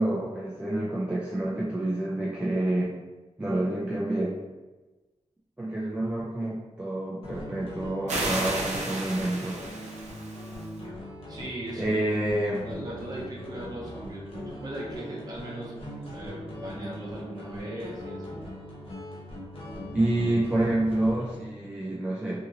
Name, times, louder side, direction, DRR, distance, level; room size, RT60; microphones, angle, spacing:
voice 1, 0.0-3.0 3.4-4.4 5.6-9.6 11.8-12.6 19.9-22.4, right 1 dB, 10° right, -6 dB, 0.3 m, -28 dB
sound 1, 7.2-21.4, equal, 55° left, 0.7 m, -41 dB
sound 2, 8.1-10.7, right 2 dB, 85° right, 0.5 m, -32 dB
voice 2, 11.3-12.0 12.6-15.7 16.1-18.4, right 1 dB, 35° right, -4 dB, 0.7 m, -38 dB
2.7 x 2.5 x 2.9 m, 1.2 s
wide cardioid pair, 175°, 12 cm